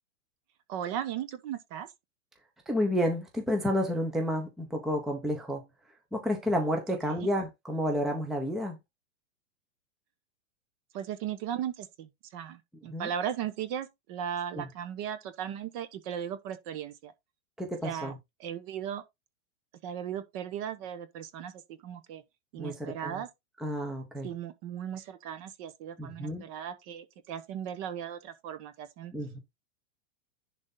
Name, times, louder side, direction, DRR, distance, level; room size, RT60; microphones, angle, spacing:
voice 1, 0.7-1.9 7.2-7.3 10.9-17.1 17.8-18.1 18.4-19.0 19.8-21.5 21.8-22.2 22.5-23.3 24.2-29.1, right 9 dB, 25° right, 0.9 m, -37 dB
voice 2, 2.7-5.6 6.1-8.8 12.9-13.1 14.5-14.7 17.6-18.1 22.6-23.2 23.6-24.3 26.0-26.4 29.1-29.4, equal, ahead, 0.8 m, -30 dB
10.5 x 4.1 x 3.7 m
supercardioid pair, 165°, 41 cm